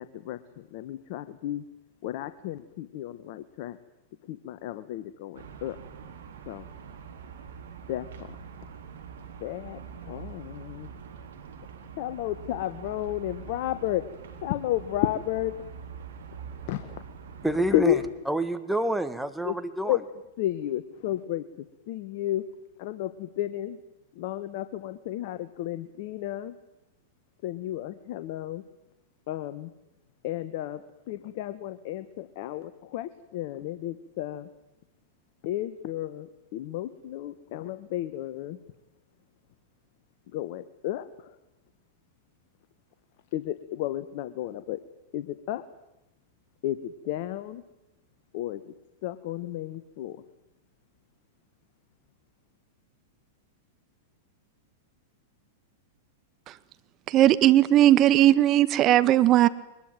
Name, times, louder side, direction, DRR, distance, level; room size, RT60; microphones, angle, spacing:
voice 1, 0.0-1.6 2.0-3.8 4.3-5.8 6.5-6.7 7.9-8.4 9.4-10.9 12.0-14.1 14.4-15.6 16.7-17.0 17.7-18.0 19.4-19.5 19.8-20.0 20.4-22.5 22.8-23.8 24.1-26.5 27.4-28.6 29.3-29.7 30.2-34.5 35.4-38.6 40.3-41.3 43.3-44.8 45.1-45.6 46.6-47.6 48.3-48.6 49.0-50.2, left 13 dB, 55° left, 11 dB, 1.3 m, -32 dB
sound 1, 5.3-18.1, right 6 dB, 75° right, 3.6 m, -44 dB
voice 2, 17.4-18.0 18.3-20.0, right 1 dB, 5° right, 10 dB, 1.8 m, -27 dB
voice 3, 57.1-59.5, right 13 dB, 40° right, 14 dB, 1.5 m, -18 dB
23.0 x 21.0 x 9.1 m, 0.94 s
hypercardioid pair, 105°, 0 cm